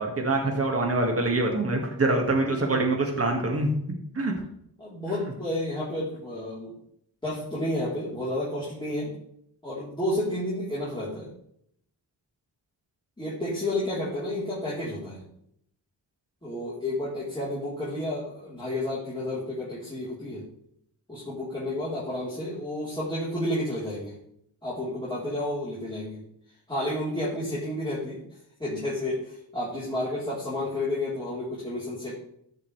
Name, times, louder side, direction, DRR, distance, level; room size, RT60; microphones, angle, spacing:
voice 1, 0.0-3.7 4.1-4.3, right 2 dB, 35° right, 1 dB, 2.1 m, -25 dB
voice 2, 4.8-6.7 7.2-9.2 9.6-11.3 13.2-15.2 16.4-20.4 21.1-24.1 24.6-26.2 26.7-28.2 28.6-32.1, left 1 dB, 10° left, -9 dB, 4.0 m, -31 dB
14.0 x 5.7 x 3.4 m, 0.72 s
cardioid pair, 65°, 42 cm